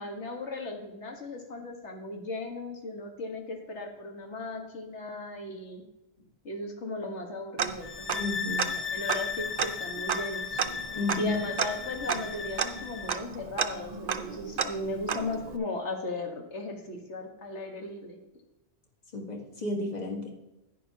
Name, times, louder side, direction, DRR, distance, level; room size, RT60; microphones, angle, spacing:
voice 1, 0.0-5.8 6.4-8.2 8.5-10.6 11.2-18.2, left 2 dB, 75° left, 3 dB, 1.7 m, -37 dB
Tick-tock, 7.6-8.3 8.6-8.7 9.1-15.6, right 7 dB, 50° right, 0.5 m, -32 dB
sound 1, 7.8-13.2, left 6 dB, 15° left, 0.5 m, -36 dB
voice 2, 8.2-8.7 10.9-11.4 19.1-20.3, left 2 dB, 35° left, 1 dB, 1.5 m, -32 dB
10.5 x 9.8 x 2.8 m, 0.98 s
omnidirectional pair, 1.2 m